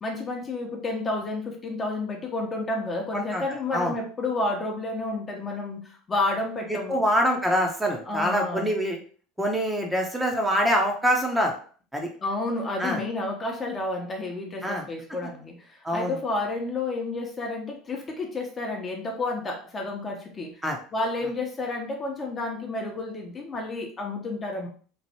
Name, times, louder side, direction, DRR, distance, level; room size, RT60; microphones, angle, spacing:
voice 1, 0.0-7.0 8.1-8.7 12.2-20.6 20.9-24.7, left 2 dB, 30° left, 1 dB, 0.8 m, -30 dB
voice 2, 6.7-9.0 9.4-11.5 11.9-12.1 12.8-13.0 14.6-14.8 15.8-16.2 20.6-20.8, equal, 5° right, 1 dB, 0.8 m, -25 dB
3.1 x 2.5 x 2.8 m, 0.43 s
hypercardioid pair, 80°, 0 cm